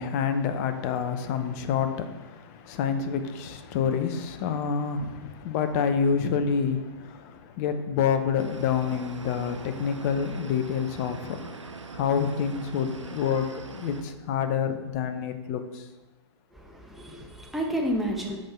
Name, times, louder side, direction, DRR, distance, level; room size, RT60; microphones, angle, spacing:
voice 1, 0.0-11.4 11.9-13.4 13.7-15.8, left 7 dB, 35° left, 0.8 m, -28 dB
sound 1, 8.4-14.0, right 3 dB, 85° right, 0.7 m, -42 dB
voice 2, 16.5-18.4, equal, ahead, 1.0 m, -30 dB
7.6 x 5.4 x 4.4 m
figure-of-eight pair, 120°, 15 cm